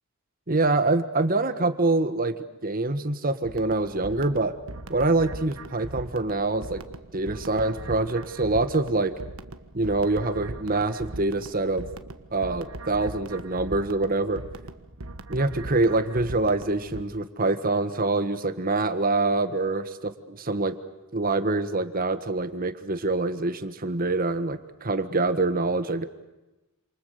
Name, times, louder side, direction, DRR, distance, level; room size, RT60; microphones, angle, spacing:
voice 1, 0.5-2.3 2.6-4.6 4.9-6.8 7.1-9.1 9.7-11.9 12.3-14.4 15.3-20.7 21.1-26.0, right 2 dB, 45° right, 10 dB, 1.6 m, -25 dB
sound 1, 3.4-17.0, right 2 dB, 85° right, 1.4 m, -40 dB
28.5 x 28.0 x 6.7 m, 1.0 s
head